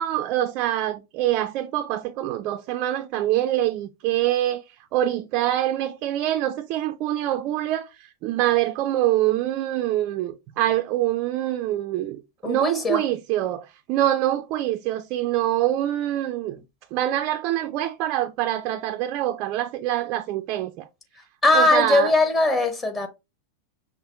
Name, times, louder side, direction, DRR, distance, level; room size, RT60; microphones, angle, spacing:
voice 1, 0.0-4.6 4.9-16.6 16.9-20.9 21.5-22.1, right 13 dB, 40° right, 0.4 m, -25 dB
voice 2, 12.4-13.0 21.4-23.1, left 2 dB, 20° left, 1.1 m, -20 dB
5.9 x 2.2 x 3.6 m
figure-of-eight pair, 90°, 0 cm